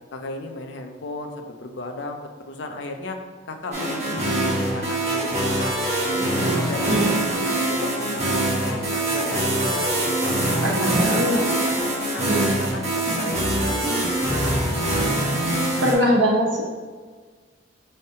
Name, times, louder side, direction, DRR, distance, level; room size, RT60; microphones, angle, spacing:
voice 1, 0.1-2.2 2.5-5.8 6.1-14.5 14.8-15.4, left 2 dB, 70° left, 5 dB, 0.5 m, -35 dB
sound 1, 3.7-15.9, right 1 dB, 35° right, 1.2 m, -23 dB
voice 2, 6.9-7.2 10.6-11.4 12.3-12.6 15.8-16.6, equal, 90° right, -2 dB, 0.9 m, -21 dB
5.4 x 3.2 x 2.8 m, 1.5 s
head